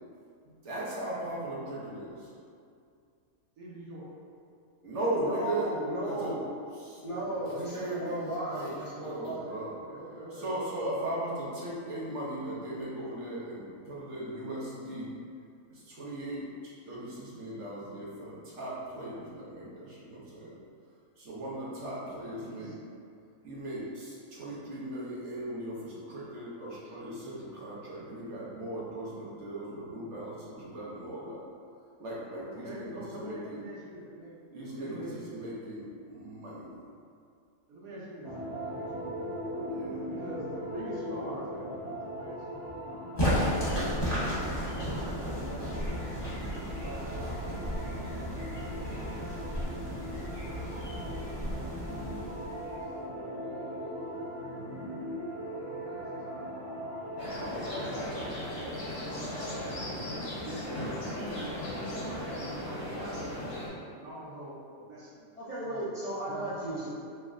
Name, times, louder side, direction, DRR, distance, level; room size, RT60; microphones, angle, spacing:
voice 1, 0.4-2.3 4.8-5.7 6.0-6.3 7.2-7.5 7.9-9.8 10.3-15.1 15.7-20.5 21.2-22.7 23.4-31.4 32.0-33.6 34.5-36.8 39.0-39.1 39.7-40.0 59.8-60.2, right 1 dB, 60° right, -6 dB, 1.0 m, -38 dB
voice 2, 3.6-4.1 9.7-10.5 22.4-22.7 32.5-34.3 34.8-35.4 37.7-38.3 38.7-39.1 40.1-43.2 44.5-45.7 46.4-47.5 47.9-48.5 49.1-49.6 50.0-50.9 51.8-52.8 53.5-54.2 55.4-56.4 60.0-61.5 62.1-63.6 63.8-65.3 65.6-65.9 66.2-66.5, right 1 dB, 90° right, -7 dB, 1.3 m, -45 dB
voice 3, 5.2-6.4 7.0-9.5 65.4-66.9, right 1 dB, 40° left, -13 dB, 0.5 m, -34 dB
sound 1, 38.2-58.1, equal, 20° right, 0.4 m, -40 dB
sound 2, 43.2-53.0, equal, 20° left, 1.0 m, -33 dB
sound 3, 57.2-63.7, left 1 dB, 55° left, 1.1 m, -36 dB
3.1 x 2.1 x 3.6 m, 2.4 s
omnidirectional pair, 1.5 m